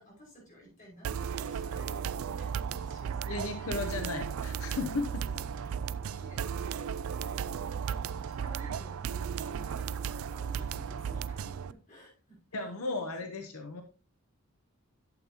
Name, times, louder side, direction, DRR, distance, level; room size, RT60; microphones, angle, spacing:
voice 1, 0.0-3.9 5.2-12.7 12.9-13.3, equal, 40° left, -3 dB, 6.0 m, -54 dB
sound 1, 1.0-11.7, right 7 dB, 75° right, 0.3 m, -35 dB
voice 2, 3.3-5.2 12.5-13.8, left 3 dB, 85° left, 4 dB, 0.9 m, -35 dB
11.5 x 7.3 x 2.9 m, 0.35 s
head